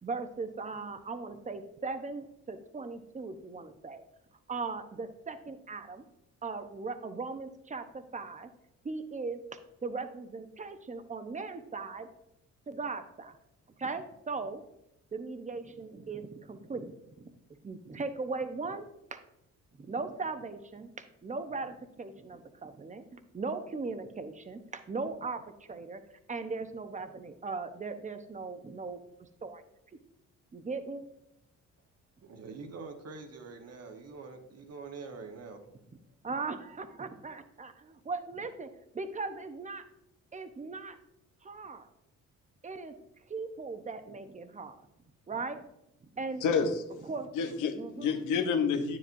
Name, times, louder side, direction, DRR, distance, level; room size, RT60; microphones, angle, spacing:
voice 1, 0.0-4.0 4.5-6.0 6.4-8.5 8.8-9.4 9.8-12.1 12.7-13.4 13.8-14.6 15.1-17.3 17.6-19.2 19.8-26.0 26.3-29.6 30.5-31.0 36.2-39.9 40.3-41.0 41.4-41.9 42.6-42.9 43.3-44.8 45.3-45.6 46.0-46.4 47.0-47.3 47.7-48.1, right 4 dB, 25° right, 9 dB, 0.8 m, -38 dB
voice 2, 32.2-35.6, right 4 dB, 55° right, 5 dB, 1.3 m, -45 dB
voice 3, 46.4-46.8 47.3-49.0, left 5 dB, 85° left, 6 dB, 1.0 m, -29 dB
9.4 x 7.6 x 2.6 m, 0.84 s
cardioid pair, 90°, 30 cm